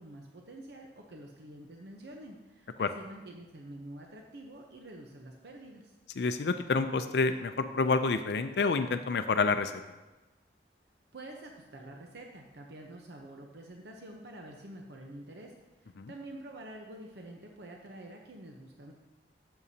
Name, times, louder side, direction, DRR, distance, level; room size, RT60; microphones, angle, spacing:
voice 1, 0.0-5.9 11.1-15.5 15.8-18.9, right 1 dB, 80° right, 1 dB, 0.9 m, -47 dB
voice 2, 6.2-9.7 16.0-16.1, left 4 dB, 70° left, 9 dB, 0.4 m, -28 dB
12.5 x 7.9 x 2.8 m, 1.1 s
head